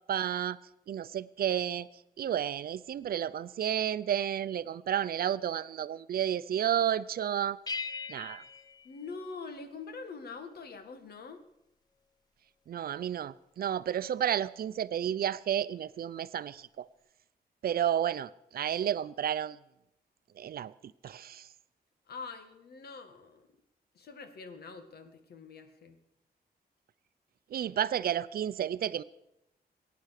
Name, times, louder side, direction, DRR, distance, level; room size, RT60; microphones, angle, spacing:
voice 1, 0.1-0.6 0.9-1.9 2.2-7.6 8.1-8.4 12.7-16.9 17.6-19.6 20.4-20.7 21.0-21.5 27.5-29.0, right 10 dB, 70° right, 16 dB, 0.6 m, -31 dB
sound 1, 7.7-9.9, left 4 dB, 25° left, 0.5 m, -41 dB
voice 2, 8.8-11.4 22.1-23.5 23.9-26.0, left 4 dB, 80° left, 8 dB, 2.0 m, -44 dB
21.5 x 9.4 x 6.6 m, 0.86 s
wide cardioid pair, 170°, 16 cm